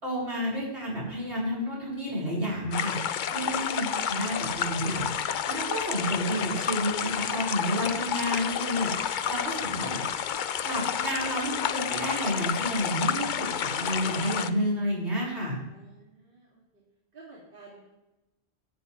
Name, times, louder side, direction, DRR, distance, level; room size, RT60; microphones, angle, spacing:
voice 1, 0.0-10.0 10.6-15.6, equal, 80° right, -5 dB, 6.7 m, -30 dB
sound 1, 2.7-14.5, left 8 dB, 55° left, 0.7 m, -30 dB
voice 2, 3.4-4.0 15.7-16.6 17.1-17.9, right 3 dB, 55° right, -5 dB, 3.1 m, -51 dB
17.0 x 12.0 x 3.4 m, 0.96 s
omnidirectional pair, 1.1 m